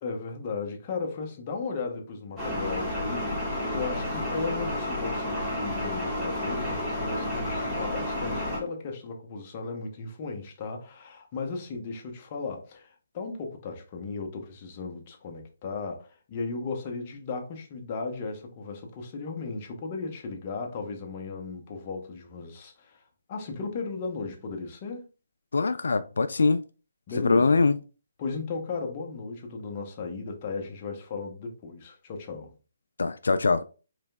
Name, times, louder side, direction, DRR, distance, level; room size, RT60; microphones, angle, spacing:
voice 1, 0.0-23.0 23.3-25.0 27.1-27.6 28.2-32.5, left 4 dB, 25° left, 0.9 m, -36 dB
sound 1, 2.4-8.6, left 1 dB, ahead, 1.5 m, -31 dB
voice 2, 25.5-26.6 27.2-27.8 33.0-33.6, left 4 dB, 90° left, 0.3 m, -22 dB
4.9 x 3.3 x 2.3 m
hypercardioid pair, 165°, 0 cm